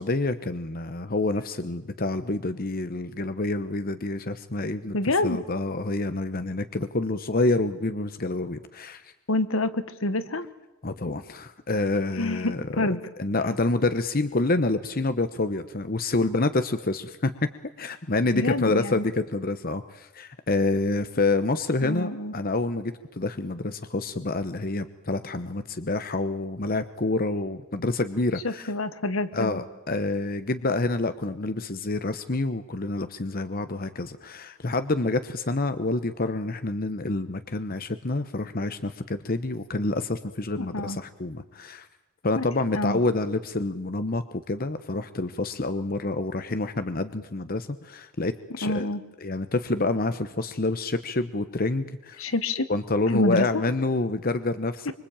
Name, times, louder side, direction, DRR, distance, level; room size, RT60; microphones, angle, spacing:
voice 1, 0.0-5.0 5.2-9.1 10.8-12.9 13.2-17.5 17.8-28.7 29.3-41.9 42.2-48.9 49.2-52.2 52.7-54.9, left 2 dB, 45° left, 10 dB, 1.0 m, -27 dB
voice 2, 4.9-5.4 9.3-10.5 12.2-13.0 18.3-19.0 21.8-22.4 28.4-29.6 40.6-41.0 42.3-42.4 42.7-43.0 48.6-49.0 52.2-52.7 53.1-53.6 54.8-54.9, left 2 dB, 70° left, 13 dB, 1.5 m, -27 dB
25.0 x 25.0 x 8.9 m, 0.98 s
head